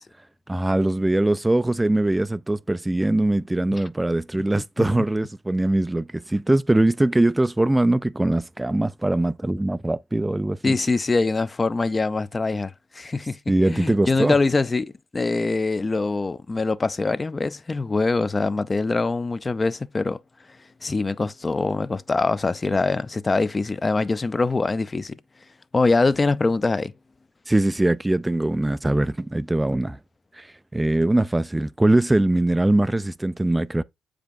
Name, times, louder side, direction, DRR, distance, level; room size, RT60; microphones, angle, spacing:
voice 1, 0.5-10.8 13.5-14.4 27.5-30.0 30.3-33.8, right 1 dB, 15° right, 0.4 m, -22 dB
voice 2, 4.5-4.9 10.6-13.4 13.7-20.2 20.8-25.2 25.7-26.9, left 3 dB, 30° left, 0.6 m, -23 dB
7.4 x 5.1 x 2.5 m
supercardioid pair, 55°, 0 cm